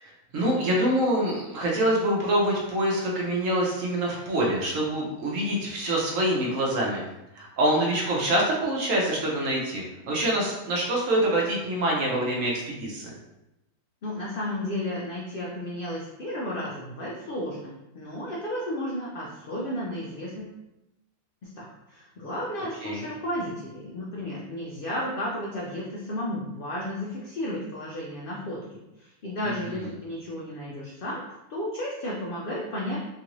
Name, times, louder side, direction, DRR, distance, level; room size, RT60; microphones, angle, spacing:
voice 1, 0.0-7.0 7.4-13.1 22.8-23.0 29.4-29.9, right 1 dB, 65° right, -2 dB, 1.0 m, -25 dB
voice 2, 14.0-20.5 21.6-31.2 31.5-33.0, left 1 dB, 80° left, -4 dB, 0.4 m, -33 dB
3.0 x 2.5 x 3.0 m, 0.93 s
omnidirectional pair, 1.6 m